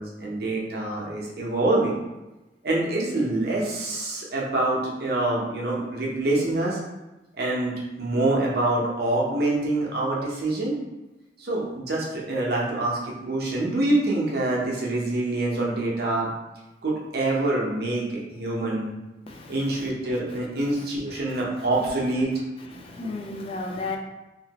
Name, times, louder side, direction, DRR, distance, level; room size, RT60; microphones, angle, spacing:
voice 1, 0.0-2.0 2.6-6.8 7.4-10.8 11.4-16.3 16.8-18.9 19.5-22.3, right 2 dB, 60° right, -3 dB, 0.7 m, -26 dB
voice 2, 19.3-19.6 22.7-24.0, left 3 dB, 30° left, 2 dB, 0.3 m, -33 dB
2.9 x 2.7 x 2.8 m, 1.0 s
head